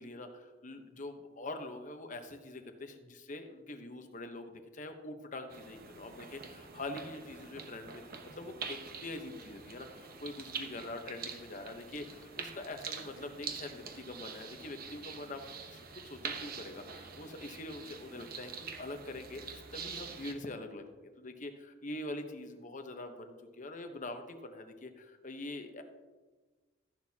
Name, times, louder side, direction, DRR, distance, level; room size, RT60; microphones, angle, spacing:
voice 1, 0.0-15.5 15.7-25.8, left 2 dB, 40° left, 6 dB, 1.0 m, -44 dB
sound 1, 5.5-20.3, right 5 dB, 50° right, 1.0 m, -45 dB
14.0 x 10.5 x 2.9 m, 1.3 s
head